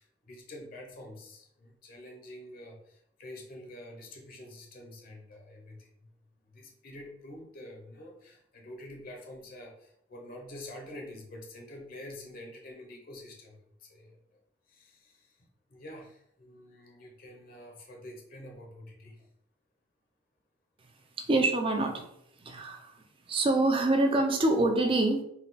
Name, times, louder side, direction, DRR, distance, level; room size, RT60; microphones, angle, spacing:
voice 1, 0.0-6.1 6.5-19.3, left 1 dB, 45° left, 1 dB, 0.7 m, -47 dB
voice 2, 21.2-22.1 22.4-25.2, right 2 dB, 25° right, 4 dB, 0.5 m, -26 dB
4.1 x 2.3 x 3.9 m, 0.74 s
head